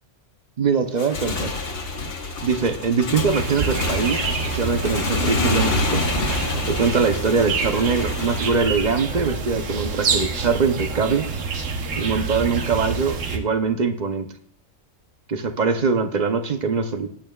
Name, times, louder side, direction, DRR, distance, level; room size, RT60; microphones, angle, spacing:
voice 1, 0.6-1.5 2.4-6.0 6.7-11.3 12.0-14.3 15.3-17.1, right 5 dB, 45° right, 8 dB, 0.7 m, -22 dB
Motorcycle / Engine, 0.9-8.5, left 3 dB, 50° left, 1.3 m, -27 dB
sound 1, 3.3-13.4, right 4 dB, 75° right, 1.4 m, -27 dB
19.0 x 8.8 x 2.3 m, 0.65 s
omnidirectional pair, 1.3 m